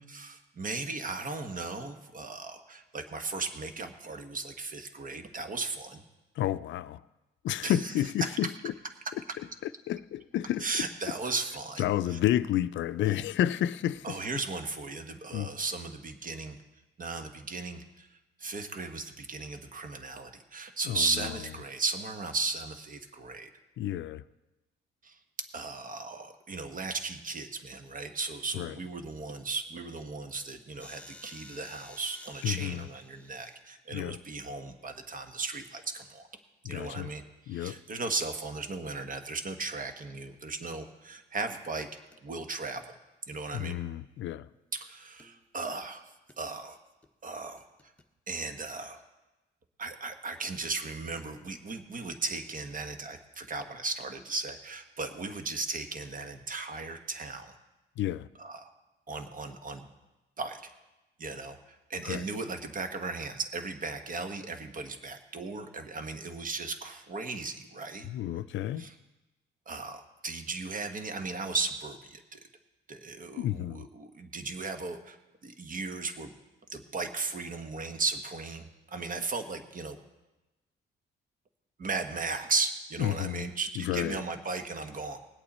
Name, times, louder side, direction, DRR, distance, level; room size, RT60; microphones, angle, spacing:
voice 1, 0.1-6.0 7.6-7.9 8.2-8.4 10.6-12.2 14.0-16.6 17.0-23.5 25.0-25.2 25.5-36.2 36.6-41.9 42.2-42.9 43.3-43.8 44.7-46.0 46.4-46.8 47.2-47.6 48.3-49.0 49.8-57.6 58.4-58.7 59.1-59.9 60.4-60.7 61.2-68.1 68.8-68.9 69.7-72.4 72.9-75.2 75.4-76.3 76.7-80.0 81.8-85.2, right 3 dB, 45° right, 1.3 m, -36 dB
voice 2, 6.4-7.0 7.4-8.7 9.9-10.7 11.8-14.2 15.3-15.5 20.9-21.3 23.8-24.2 28.5-28.7 32.4-32.8 33.9-34.2 36.6-37.1 37.5-37.8 43.5-44.5 58.0-58.3 62.0-62.2 68.0-68.9 73.4-73.9 83.0-83.4 83.8-84.2, left 12 dB, 70° left, 0.4 m, -30 dB
sound 1, 30.8-33.6 37.6-37.8 40.6-40.9 42.1-42.2 42.6-42.7 43.3-44.3 45.2-45.8 46.3-46.4 47.0-47.1 47.4-48.0, left 2 dB, 5° left, 1.0 m, -53 dB
19.5 x 8.5 x 4.2 m
cardioid pair, 90°, 20 cm